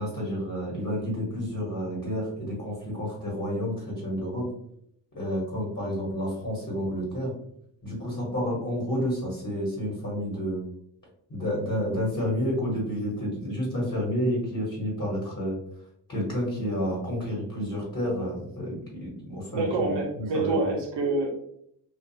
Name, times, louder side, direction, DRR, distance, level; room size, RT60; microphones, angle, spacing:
voice 1, 0.0-4.5 5.1-7.3 7.8-10.6 11.3-15.6 16.1-20.5, equal, 40° left, -4 dB, 1.1 m, -30 dB
voice 2, 19.5-21.3, right 3 dB, 85° right, 1 dB, 0.9 m, -26 dB
2.4 x 2.3 x 2.7 m, 0.72 s
cardioid pair, 90°, 41 cm